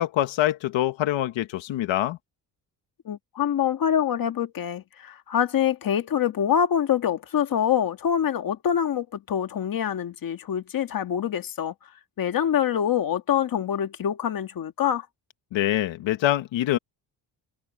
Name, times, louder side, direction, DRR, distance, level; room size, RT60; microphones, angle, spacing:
voice 1, 0.0-2.2 15.5-16.8, left 13 dB, 90° left, 1.1 m, -24 dB
voice 2, 3.0-11.7 12.2-15.1, left 9 dB, 50° left, 1.6 m, -25 dB
cardioid pair, 170°, 44 cm